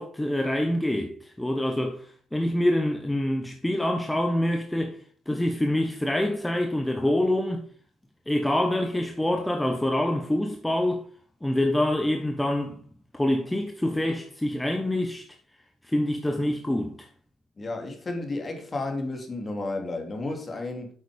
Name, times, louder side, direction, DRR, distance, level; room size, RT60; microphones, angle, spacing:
voice 1, 0.0-5.0 5.3-7.6 8.3-11.0 11.4-12.8 13.1-15.2 15.8-17.1, left 1 dB, 10° left, 1.3 m, -26 dB
voice 2, 17.6-20.9, left 2 dB, 35° left, 3.0 m, -32 dB
8.6 x 7.4 x 5.2 m
cardioid pair, 90°, 0 cm